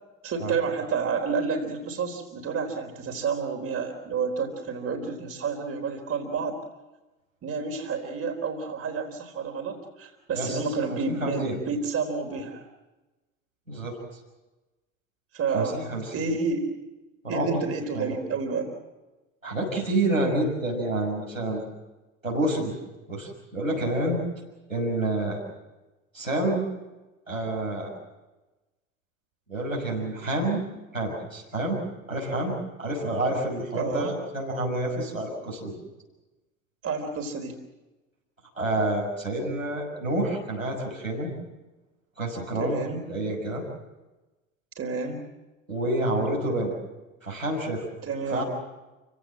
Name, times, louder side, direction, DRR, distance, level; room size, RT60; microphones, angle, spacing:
voice 1, 0.2-6.6 7.4-12.6 15.3-15.8 16.1-16.7 17.3-18.7 33.7-34.1 36.8-37.6 42.6-43.0 44.8-45.2 48.0-48.4, right 5 dB, 35° right, 3 dB, 4.1 m, -30 dB
voice 2, 11.1-11.6 13.7-14.0 15.5-16.0 17.2-17.5 17.9-18.2 19.4-21.6 22.2-22.7 23.1-24.2 24.7-25.4 26.1-26.6 27.3-27.9 29.5-30.6 30.9-31.8 32.1-35.7 38.6-41.3 42.2-42.8 43.1-43.6 45.7-46.7 47.2-47.8 48.3-48.4, right 1 dB, 90° right, -3 dB, 6.2 m, -28 dB
29.0 x 17.0 x 7.6 m, 1.1 s
figure-of-eight pair, 65°, 39 cm